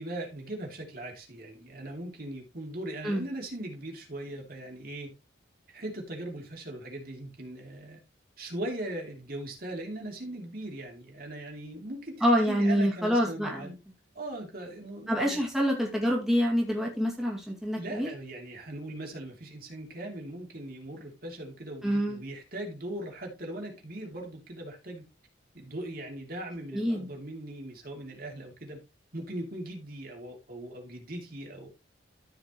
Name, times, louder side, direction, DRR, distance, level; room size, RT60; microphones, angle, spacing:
voice 1, 0.0-5.1 5.7-8.0 8.4-13.7 14.1-15.4 17.7-25.1 25.5-28.8 29.1-31.7, right 1 dB, 50° right, 2.7 m, -39 dB
voice 2, 12.2-13.7 15.1-18.1 21.8-22.2 26.7-27.1, equal, ahead, 2.2 m, -26 dB
14.0 x 5.1 x 3.1 m
head